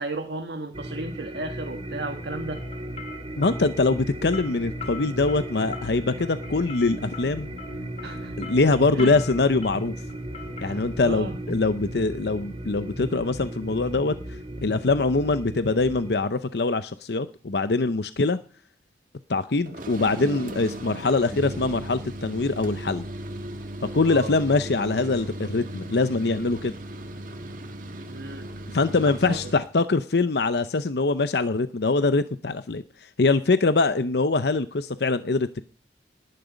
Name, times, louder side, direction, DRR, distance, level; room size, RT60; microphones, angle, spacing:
voice 1, 0.0-2.6 8.0-8.5 8.9-9.1 10.6-11.4 24.0-24.4 28.1-28.5 29.0-29.5, right 2 dB, 75° right, 5 dB, 1.5 m, -34 dB
sound 1, 0.7-16.2, right 1 dB, 35° right, 2.0 m, -36 dB
sound 2, 2.5-12.4, left 6 dB, 35° left, 2.4 m, -43 dB
voice 2, 3.4-7.5 8.4-9.9 10.6-14.1 14.6-18.4 19.3-23.0 23.8-26.7 28.7-35.6, left 3 dB, 70° left, 12 dB, 0.7 m, -23 dB
sound 3, 19.6-29.7, right 1 dB, 50° right, 2.0 m, -37 dB
19.0 x 11.0 x 5.2 m, 0.43 s
head